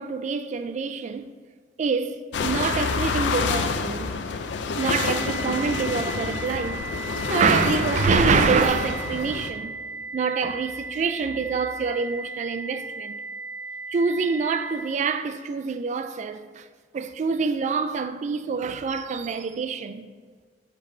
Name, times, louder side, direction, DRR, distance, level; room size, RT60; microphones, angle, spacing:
voice 1, 0.0-1.3 1.8-4.2 4.8-6.9 7.2-9.8 10.1-13.1 13.9-16.7 16.9-20.1, right 5 dB, 40° right, 0.3 m, -26 dB
sound 1, 2.3-9.5, left 4 dB, 75° left, 0.4 m, -27 dB
sound 2, 4.8-14.8, right 3 dB, 75° right, 0.9 m, -37 dB
9.6 x 3.3 x 3.7 m
head